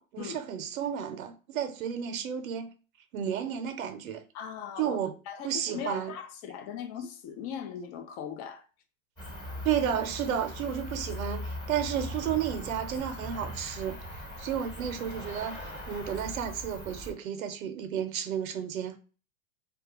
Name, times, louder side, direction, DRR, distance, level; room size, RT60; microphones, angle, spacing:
voice 1, 0.1-2.7 3.1-4.2 4.8-5.1 5.4-6.1 9.6-14.0 14.4-15.6 15.9-19.0, right 9 dB, 90° right, 0.7 m, -32 dB
voice 2, 4.3-5.0 5.3-8.6, left 8 dB, 35° left, 0.5 m, -39 dB
Cricket, 9.2-17.1, left 1 dB, 10° left, 1.0 m, -40 dB
2.3 x 2.2 x 2.9 m
hypercardioid pair, 125°, 40 cm